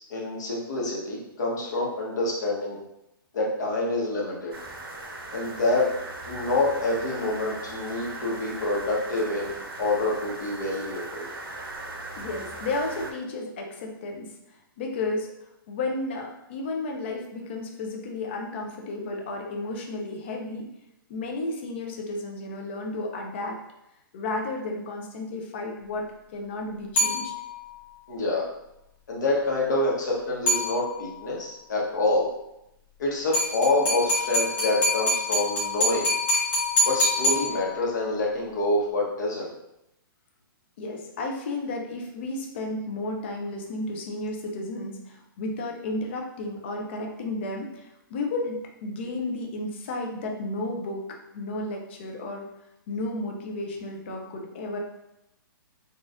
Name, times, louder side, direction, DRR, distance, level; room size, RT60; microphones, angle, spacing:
voice 1, 0.0-2.8 3.3-4.5 5.3-5.9 6.3-11.3 28.1-28.4 29.1-32.3 33.0-36.1 36.8-39.5, left 2 dB, 50° left, -3 dB, 1.0 m, -27 dB
sound 1, 4.5-13.1, right 2 dB, 75° right, 0.7 m, -39 dB
voice 2, 12.2-14.3 14.8-15.3 15.7-20.7 21.1-23.6 24.1-27.3 40.8-51.0 51.3-52.5 52.9-54.8, left 2 dB, 30° left, 1 dB, 0.4 m, -33 dB
sound 2, 27.0-27.7 30.5-31.2 33.3-38.0, left 1 dB, 15° left, 0.9 m, -26 dB
4.1 x 2.4 x 2.4 m, 0.85 s
hypercardioid pair, 170°, 12 cm